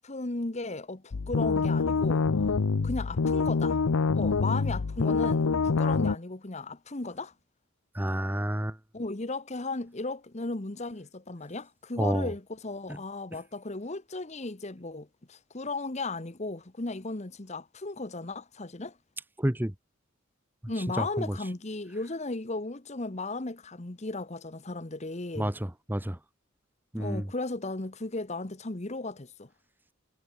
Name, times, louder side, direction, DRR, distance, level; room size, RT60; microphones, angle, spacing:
voice 1, 0.0-2.2 2.8-3.8 4.2-7.3 8.9-19.0 20.7-25.5 27.0-29.5, left 2 dB, 35° left, 1.1 m, -35 dB
sound 1, 1.1-6.2, left 4 dB, 85° left, 0.6 m, -26 dB
voice 2, 7.9-8.8 12.0-12.3 19.4-19.7 21.0-21.3 25.4-26.2 26.9-27.2, right 1 dB, 10° right, 1.1 m, -29 dB
head